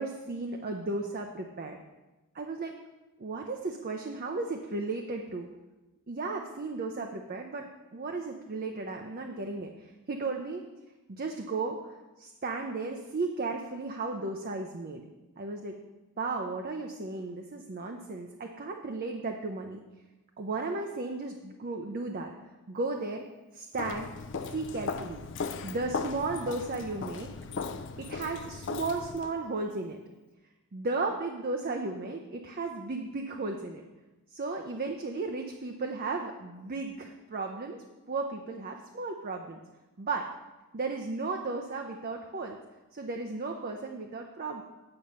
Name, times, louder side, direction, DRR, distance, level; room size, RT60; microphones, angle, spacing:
voice 1, 0.0-1.8 2.3-2.7 3.2-5.5 6.1-10.6 11.1-15.0 15.4-15.8 16.2-19.8 20.4-22.3 22.7-23.2 23.5-24.1 24.5-25.2 25.6-27.3 28.0-30.0 30.7-33.8 34.3-37.8 38.1-39.6 40.0-40.3 40.7-42.6 42.9-44.6, right 3 dB, 40° right, 3 dB, 0.6 m, -35 dB
Walk footsteps, 23.8-29.3, left 4 dB, 55° left, 0.5 m, -37 dB
8.8 x 6.2 x 5.5 m, 1.1 s
head